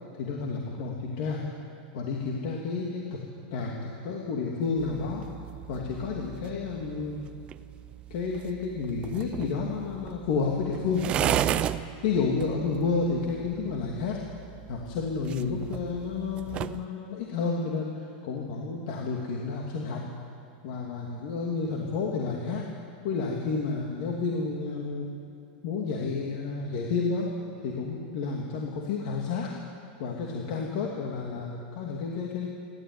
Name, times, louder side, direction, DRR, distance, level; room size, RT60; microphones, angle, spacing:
voice 1, 0.2-1.4 1.9-3.2 3.5-5.3 5.7-7.2 8.1-11.4 12.0-14.2 14.7-20.0 20.6-22.7 23.0-25.1 25.6-27.3 27.6-29.5 30.0-32.5, left 4 dB, 45° left, -1 dB, 2.5 m, -30 dB
sound 1, 4.8-16.9, right 11 dB, 20° right, 0.5 m, -35 dB
28.5 x 13.0 x 9.6 m, 2.4 s
supercardioid pair, 175°, 5 cm